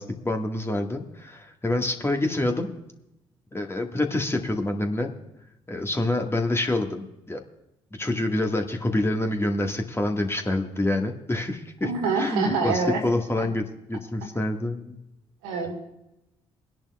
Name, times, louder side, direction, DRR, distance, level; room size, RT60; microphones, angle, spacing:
voice 1, 0.0-2.7 3.5-5.1 5.7-7.4 8.0-11.9 12.2-13.6 13.9-15.0, left 2 dB, 15° left, 4 dB, 1.6 m, -27 dB
voice 2, 11.8-13.0 13.4-13.5 15.4-15.7, right 4 dB, 70° right, 2 dB, 1.8 m, -26 dB
24.0 x 10.5 x 2.3 m, 0.89 s
figure-of-eight pair, 40°, 14 cm